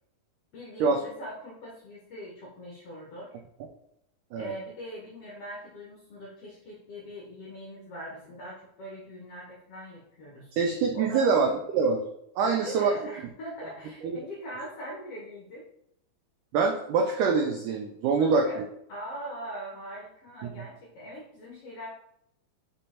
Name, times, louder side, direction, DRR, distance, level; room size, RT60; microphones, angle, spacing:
voice 1, 0.5-3.4 4.4-10.6 10.9-11.3 12.4-15.7 18.1-18.6 18.9-21.9, equal, 65° left, -4 dB, 1.5 m, -41 dB
voice 2, 10.6-12.0 12.4-12.9 14.0-14.2 16.5-18.5 20.4-20.5, right 5 dB, 90° right, 4 dB, 1.8 m, -24 dB
5.3 x 5.2 x 4.2 m, 0.77 s
omnidirectional pair, 4.3 m